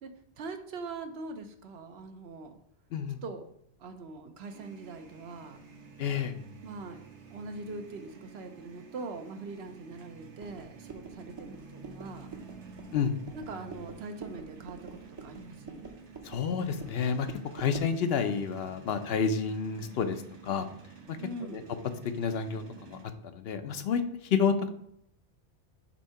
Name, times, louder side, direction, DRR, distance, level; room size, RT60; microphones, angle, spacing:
voice 1, 0.0-2.6 3.2-3.4 3.8-5.6 6.6-7.1 7.3-12.3 13.3-15.9 21.2-21.7, right 3 dB, 65° right, 7 dB, 0.9 m, -42 dB
sound 1, 4.5-23.0, right 5 dB, 80° right, 1.3 m, -51 dB
voice 2, 6.0-6.3 12.9-13.1 16.2-17.3 17.5-20.7 21.1-21.2 21.5-21.6 22.2-23.0 23.2-24.7, left 6 dB, 65° left, 8 dB, 0.8 m, -29 dB
Pounding Tire, 10.4-18.0, right 4 dB, 30° right, 0.6 m, -47 dB
7.0 x 2.7 x 5.5 m, 0.72 s
omnidirectional pair, 1.2 m